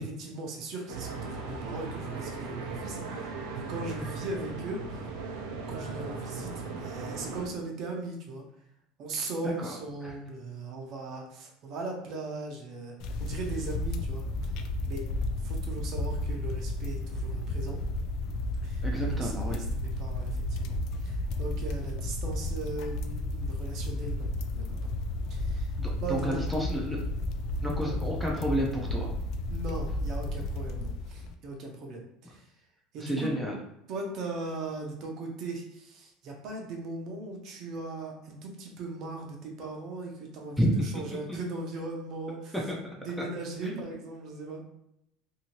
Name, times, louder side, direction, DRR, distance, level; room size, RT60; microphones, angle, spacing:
voice 1, 0.2-4.8 5.7-8.4 9.0-14.5 14.8-15.0 15.4-17.8 18.6-18.9 19.2-24.3 24.5-24.9 25.3-25.7 26.0-26.6 27.8-28.0 29.5-32.5 32.9-33.3 33.9-42.5 43.0-44.6, right 3 dB, 45° right, 1 dB, 0.7 m, -38 dB
sound 1, 0.9-7.5, right 4 dB, 85° right, 0.6 m, -38 dB
voice 2, 9.4-9.7 10.0-10.1 18.8-19.6 25.8-27.0 27.6-29.1 33.0-33.6 40.6-40.7 41.3-41.4 42.5-42.8 43.6-43.7, equal, ahead, -2 dB, 0.5 m, -30 dB
sound 2, 13.0-31.3, left 1 dB, 55° left, 0.3 m, -32 dB
2.7 x 2.7 x 3.0 m, 0.77 s
cardioid pair, 145°, 0 cm